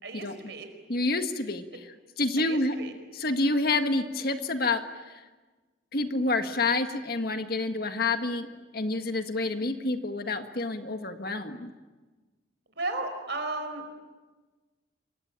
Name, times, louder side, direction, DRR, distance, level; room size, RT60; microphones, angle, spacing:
voice 1, 0.0-0.7 2.4-2.9 12.7-13.8, right 2 dB, 60° right, 7 dB, 4.9 m, -34 dB
voice 2, 0.9-1.6 2.2-2.8 3.1-4.8 5.9-8.5 8.7-11.7, left 2 dB, 50° left, 7 dB, 1.7 m, -28 dB
27.5 x 24.0 x 9.0 m, 1.3 s
head